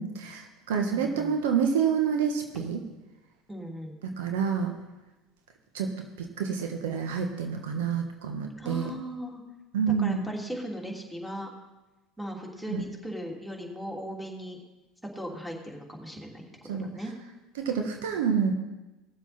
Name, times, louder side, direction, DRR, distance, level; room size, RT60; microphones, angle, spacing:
voice 1, 0.0-2.8 4.0-4.7 5.7-5.9 6.2-8.9 9.7-10.3 12.7-12.8 16.7-16.9 17.6-18.5, right 6 dB, 80° right, 4 dB, 1.4 m, -28 dB
voice 2, 0.7-1.4 3.5-4.0 8.6-9.4 10.0-11.5 12.2-14.6 15.1-16.4 16.7-17.1, equal, ahead, 0 dB, 3.0 m, -38 dB
18.0 x 7.5 x 4.4 m, 1.1 s
hypercardioid pair, 80°, 0 cm